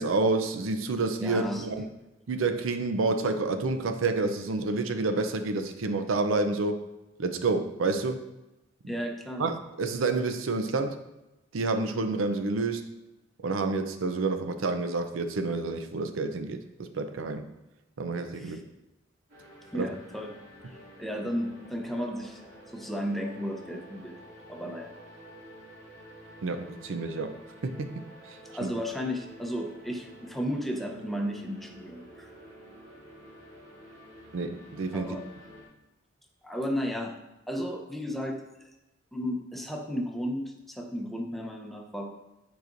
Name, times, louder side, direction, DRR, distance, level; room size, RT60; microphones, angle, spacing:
voice 1, 0.0-1.9 2.3-6.8 7.2-8.2 8.8-8.9 9.4-11.0 11.5-12.9 13.4-17.4 18.0-18.6 19.7-19.9 26.4-28.7 34.3-35.2, right 3 dB, 90° right, 8 dB, 0.5 m, -29 dB
voice 2, 1.2-1.6 8.9-9.4 18.3-18.6 19.7-20.4 21.0-22.4 22.7-24.1 24.5-24.9 28.5-32.3 34.9-35.2 36.4-37.1 37.5-38.4 39.1-42.1, equal, ahead, 1 dB, 0.7 m, -33 dB
sound 1, 19.3-35.7, equal, 60° right, 2.4 m, -50 dB
9.2 x 4.8 x 2.6 m, 0.98 s
head